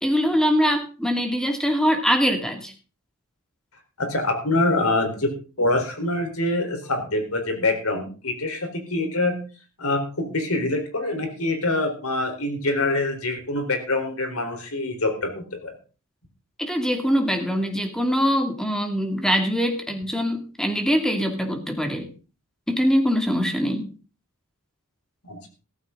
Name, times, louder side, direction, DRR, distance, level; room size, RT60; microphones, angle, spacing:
voice 1, 0.0-2.7 16.6-22.1 22.7-23.9, equal, 5° left, 4 dB, 2.4 m, -23 dB
voice 2, 4.0-9.4 9.8-15.7 25.2-25.5, left 2 dB, 80° left, 5 dB, 4.1 m, -25 dB
15.0 x 14.0 x 3.8 m, 0.35 s
head